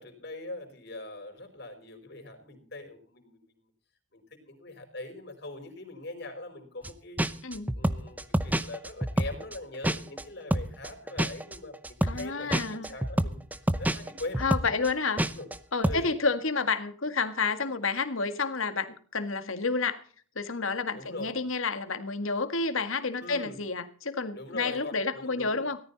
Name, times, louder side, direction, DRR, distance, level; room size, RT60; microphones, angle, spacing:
voice 1, 0.0-3.5 4.1-7.3 7.7-13.5 13.8-14.4 15.2-15.5 15.8-16.2 20.9-21.3 23.2-23.6 24.3-25.6, left 2 dB, 50° left, 4 dB, 4.8 m, -42 dB
sound 1, 6.8-6.9 7.2-10.2 10.5-15.6 15.8-16.1, right 1 dB, 10° right, 0.7 m, -28 dB
voice 2, 12.0-12.9 14.4-15.2 15.7-20.0 20.4-25.8, left 4 dB, 80° left, 10 dB, 1.8 m, -30 dB
17.5 x 14.0 x 4.1 m, 0.44 s
head